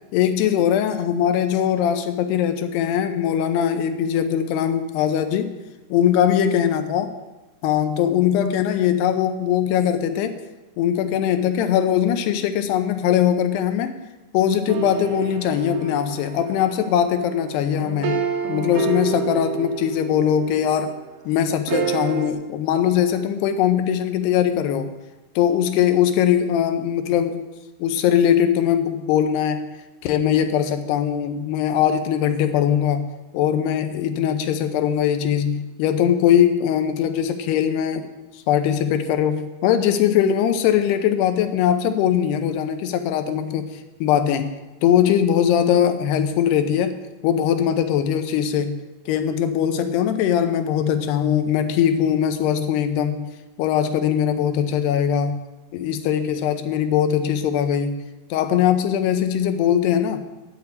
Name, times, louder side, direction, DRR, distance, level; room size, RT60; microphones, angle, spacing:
voice 1, 0.1-5.6 5.9-7.1 7.6-10.4 10.8-14.0 14.3-18.2 18.5-21.0 21.3-25.0 25.4-27.4 27.8-29.7 30.0-33.1 33.3-38.1 38.5-47.0 47.2-48.8 49.1-53.3 53.6-55.4 55.7-58.0 58.3-60.2, left 9 dB, 80° left, 8 dB, 2.8 m, -21 dB
sound 1, 14.7-20.9 21.7-22.3, right 8 dB, 70° right, 3.2 m, -29 dB
11.0 x 7.0 x 8.1 m, 1.1 s
omnidirectional pair, 4.9 m